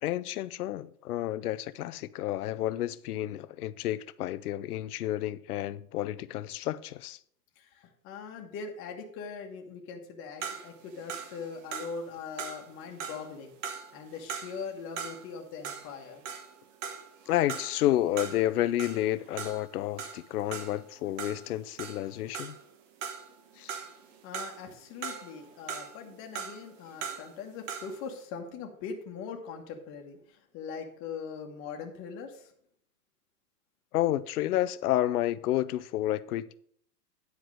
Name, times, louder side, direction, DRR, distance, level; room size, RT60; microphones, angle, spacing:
voice 1, 0.0-7.2 17.3-22.6 23.6-23.8 33.9-36.6, left 13 dB, 70° left, 0.7 m, -30 dB
voice 2, 7.6-13.5 13.9-16.2 24.2-32.5, left 5 dB, 25° left, 1.3 m, -41 dB
sound 1, 10.4-15.4 15.6-22.7 23.0-24.7 25.0-28.0, right 7 dB, 50° right, 1.4 m, -40 dB
9.8 x 4.7 x 6.3 m
hypercardioid pair, 145°, 48 cm